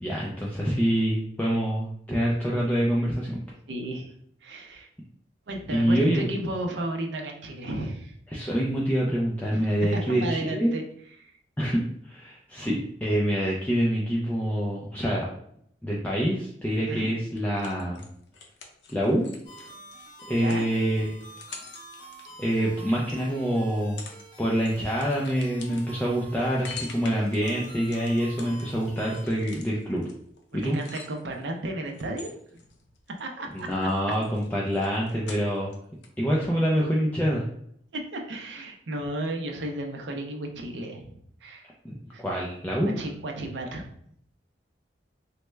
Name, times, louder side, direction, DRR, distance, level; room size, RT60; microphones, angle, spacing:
voice 1, 0.0-3.4 5.7-6.3 8.3-10.7 11.6-15.3 15.8-18.0 18.9-19.3 20.3-21.2 22.4-24.0 24.4-30.1 30.5-30.8 33.5-35.7 36.2-37.4 41.8-42.9, equal, 10° left, -4 dB, 0.4 m, -26 dB
voice 2, 3.7-4.1 4.4-4.9 5.5-8.1 9.5-10.8 11.2-11.3 16.8-17.1 20.3-20.7 30.6-32.3 33.2-33.7 37.9-41.7 42.1-42.2 42.8-43.9, right 1 dB, 80° right, 2 dB, 0.5 m, -34 dB
sound 1, 17.4-23.2 23.7-24.3 24.5-31.5 31.9-33.2 33.5-35.8 36.0-36.1, left 5 dB, 75° left, 0.5 m, -46 dB
sound 2, 19.4-29.2, right 1 dB, 30° left, 1.3 m, -48 dB
3.2 x 2.1 x 3.2 m, 0.69 s
head